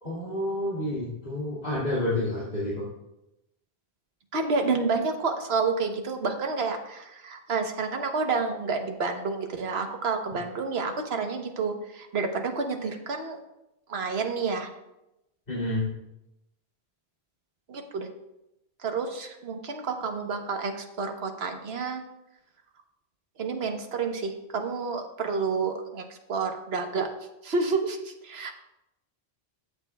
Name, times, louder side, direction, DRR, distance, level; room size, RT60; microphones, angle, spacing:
voice 1, 0.0-2.8 15.5-15.9, left 1 dB, 55° left, -8 dB, 2.6 m, -29 dB
voice 2, 4.3-13.4 13.9-14.7 17.7-18.1 18.8-22.0 23.4-27.1 27.4-28.5, right 4 dB, 75° right, 4 dB, 1.3 m, -29 dB
13.5 x 8.3 x 2.3 m, 0.90 s
omnidirectional pair, 1.1 m